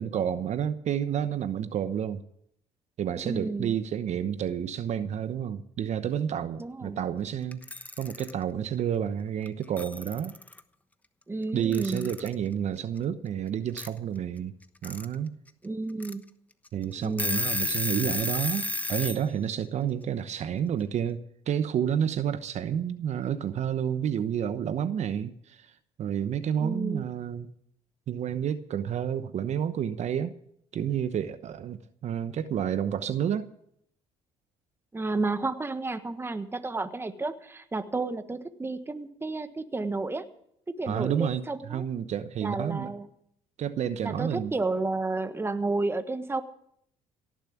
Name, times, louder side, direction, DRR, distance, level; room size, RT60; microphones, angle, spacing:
voice 1, 0.0-2.2 3.0-7.6 8.0-10.4 11.5-14.5 14.8-15.4 16.7-21.2 21.5-25.7 26.0-27.5 28.1-30.4 30.7-33.5 40.9-42.9 43.6-44.5, right 9 dB, 55° right, 0.9 m, -30 dB
voice 2, 3.2-3.7 6.6-7.0 11.3-12.1 15.6-16.2 17.0-17.4 26.6-27.0 34.9-40.2 40.7-41.8 42.4-43.1 44.0-46.4, right 3 dB, 15° right, 1.3 m, -31 dB
Alarm / Clock, 7.5-8.3 9.5-9.6 9.8-10.6 11.7-12.3 13.8-13.9 14.6-15.1 15.5-15.6 16.0-16.1 16.7-16.8 17.0-19.2, left 1 dB, 10° left, 1.1 m, -31 dB
17.0 x 7.4 x 8.6 m
supercardioid pair, 80°, 14 cm